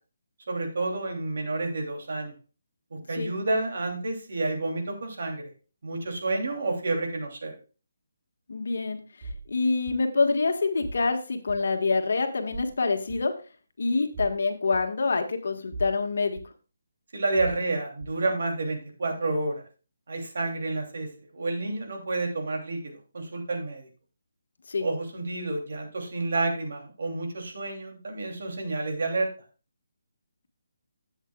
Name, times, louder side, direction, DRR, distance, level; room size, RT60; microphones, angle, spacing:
voice 1, 0.5-2.3 2.9-5.5 5.8-7.6 17.1-19.6 20.1-23.9 24.8-29.3, right 2 dB, 60° right, 2 dB, 3.0 m, -30 dB
voice 2, 8.5-9.0 9.5-13.3 13.8-16.4 24.7-24.9, left 4 dB, 65° left, 6 dB, 1.6 m, -26 dB
sound 1, 9.2-9.5 9.9-10.0 10.8-11.1 11.5-11.6 12.5-12.7 13.1-13.2 14.1-14.4 14.7-14.8 15.7-16.0 16.4-16.5 17.4-17.6 18.0-18.1, right 2 dB, 40° right, 1.3 m, -38 dB
12.5 x 8.1 x 2.4 m, 0.35 s
hypercardioid pair, 170°, 0 cm